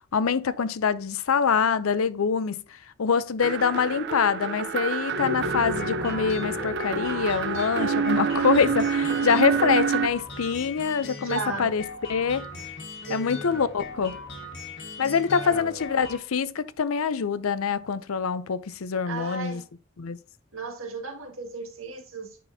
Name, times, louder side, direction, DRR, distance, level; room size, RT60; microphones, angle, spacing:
voice 1, 0.0-11.8 12.1-12.5 13.1-14.2 15.0-19.6 20.0-20.2, left 6 dB, 90° left, 0.5 m, -25 dB
sound 1, 3.4-10.1, right 5 dB, 55° right, 0.5 m, -27 dB
sound 2, 5.5-16.2, left 2 dB, 60° left, 1.7 m, -39 dB
voice 2, 11.2-11.7 13.1-13.5 15.3-15.6 19.0-19.7 20.5-22.4, right 4 dB, 80° right, 1.7 m, -35 dB
9.2 x 4.2 x 2.7 m
head